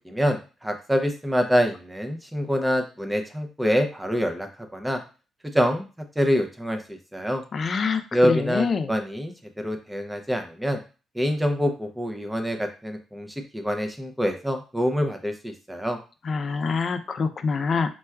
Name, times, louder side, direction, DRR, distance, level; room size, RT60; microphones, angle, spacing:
voice 1, 0.1-5.0 5.5-5.9 6.2-7.4 8.1-9.3 9.6-10.8 11.2-13.3 13.5-16.0, equal, 5° right, 4 dB, 0.5 m, -25 dB
voice 2, 7.5-8.9 16.3-17.9, left 5 dB, 45° left, 9 dB, 0.4 m, -25 dB
4.1 x 2.2 x 2.3 m, 0.33 s
cardioid pair, 90°, 0 cm